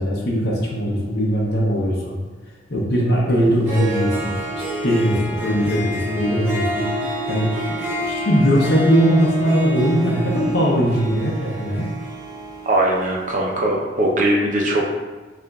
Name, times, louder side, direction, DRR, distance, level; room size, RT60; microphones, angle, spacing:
voice 1, 0.0-2.2 2.7-4.4 4.8-7.5 8.0-11.9, equal, 60° left, -4 dB, 0.7 m, -20 dB
Harp, 3.4-3.5 3.6-13.2, right 1 dB, 15° right, 1.1 m, -28 dB
voice 2, 12.7-14.8, right 1 dB, 45° right, -2 dB, 0.6 m, -20 dB
6.7 x 2.5 x 2.3 m, 1.3 s
head